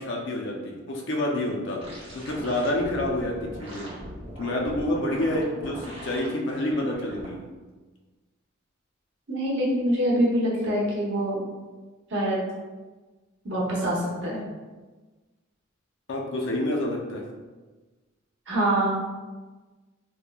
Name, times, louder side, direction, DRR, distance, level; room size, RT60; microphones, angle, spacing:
voice 1, 0.0-1.8 2.1-3.9 4.4-7.4 16.1-17.2, left 1 dB, 60° left, -1 dB, 0.4 m, -28 dB
sound 1, 1.8-6.3 6.7-7.3, equal, 25° right, 0.6 m, -40 dB
voice 2, 9.3-11.4 12.1-12.4 13.4-14.4 18.5-19.0, right 1 dB, 60° right, -6 dB, 0.8 m, -25 dB
3.1 x 2.0 x 2.2 m, 1.3 s
head